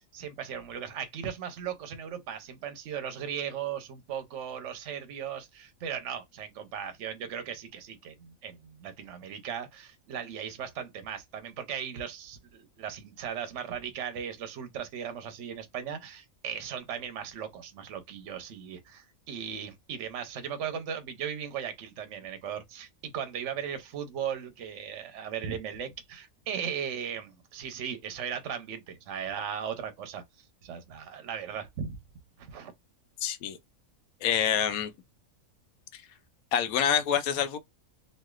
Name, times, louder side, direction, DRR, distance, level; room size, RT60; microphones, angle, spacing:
voice 1, 0.1-30.2 30.6-32.0 32.4-32.7, right 8 dB, 65° right, 1.0 m, -37 dB
voice 2, 33.2-33.6 34.2-34.9 35.9-36.0 36.5-37.6, left 9 dB, 80° left, 1.1 m, -26 dB
3.1 x 2.7 x 2.3 m
omnidirectional pair, 1.5 m